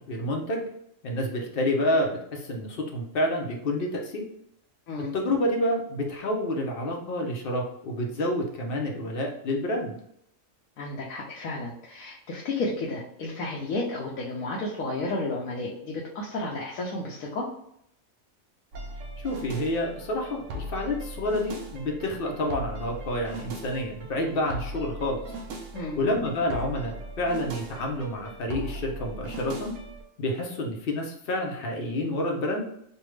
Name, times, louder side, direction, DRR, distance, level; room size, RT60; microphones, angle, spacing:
voice 1, 0.1-0.6 1.0-4.2 5.1-10.0 19.2-25.2 26.0-29.7 30.2-32.6, left 1 dB, 55° left, 1 dB, 0.7 m, -28 dB
voice 2, 10.8-17.5 25.7-26.0, left 2 dB, 85° left, -3 dB, 1.1 m, -32 dB
sound 1, 18.7-30.0, right 1 dB, 70° right, 0.9 m, -39 dB
3.3 x 2.3 x 3.1 m, 0.74 s
omnidirectional pair, 1.4 m